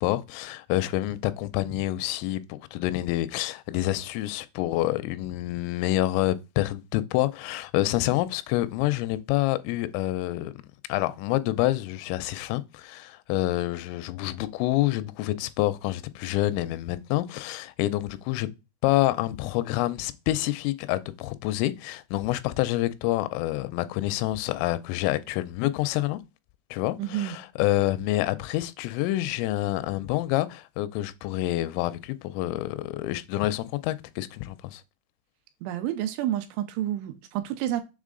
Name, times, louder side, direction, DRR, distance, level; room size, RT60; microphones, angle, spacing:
voice 1, 0.0-10.5 10.9-18.5 18.8-26.2 26.7-34.8, left 16 dB, 90° left, 3.1 m, -27 dB
voice 2, 27.0-27.4 35.6-37.8, right 12 dB, 85° right, 3.2 m, -29 dB
7.4 x 3.5 x 3.8 m
omnidirectional pair, 5.6 m